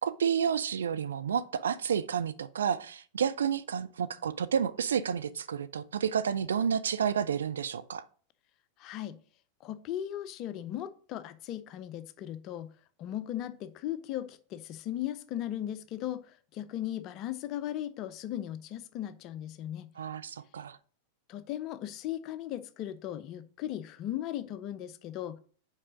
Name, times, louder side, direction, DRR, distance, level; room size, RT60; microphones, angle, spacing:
voice 1, 0.0-8.1 20.0-20.8, right 7 dB, 65° right, 0.4 m, -30 dB
voice 2, 8.8-9.2 9.6-12.7 13.0-19.9 21.3-25.4, left 12 dB, 40° left, 0.6 m, -37 dB
5.4 x 4.8 x 5.1 m
figure-of-eight pair, 90°, 0 cm